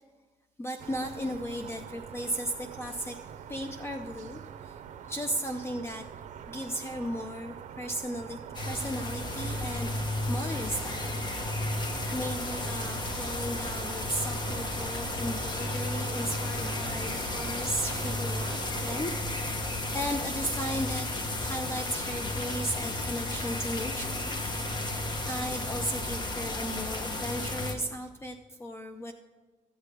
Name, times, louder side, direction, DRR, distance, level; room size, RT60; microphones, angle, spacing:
voice 1, 0.6-3.2 3.5-4.8 5.1-6.1 6.5-8.4 8.6-9.9 10.3-11.2 11.7-19.6 19.9-24.2 25.3-29.1, equal, 20° left, 6 dB, 0.5 m, -35 dB
sound 1, 0.8-19.1, right 8 dB, 70° right, 0.7 m, -44 dB
sound 2, 8.5-27.7, left 2 dB, 35° left, 1.1 m, -33 dB
13.5 x 8.4 x 4.9 m, 1.3 s
wide cardioid pair, 170°, 13 cm